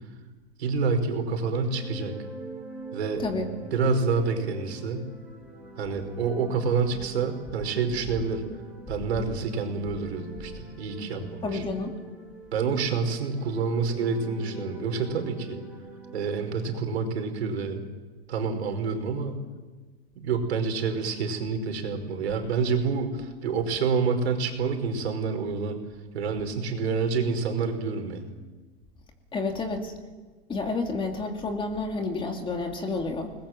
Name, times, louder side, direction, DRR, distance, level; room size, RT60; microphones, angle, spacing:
voice 1, 0.6-2.1 2.9-3.2 3.7-5.1 5.8-8.4 8.9-11.6 12.5-15.6 16.1-17.8 18.3-19.4 20.1-25.8 26.1-28.2, right 5 dB, 85° right, 6 dB, 5.1 m, -28 dB
sound 1, 1.4-17.1, right 3 dB, 5° right, 5.3 m, -44 dB
voice 2, 3.2-3.5 11.4-11.9 29.3-29.9 30.5-33.3, left 3 dB, 15° left, 4 dB, 2.5 m, -30 dB
28.5 x 21.0 x 7.5 m, 1.3 s
supercardioid pair, 140°, 32 cm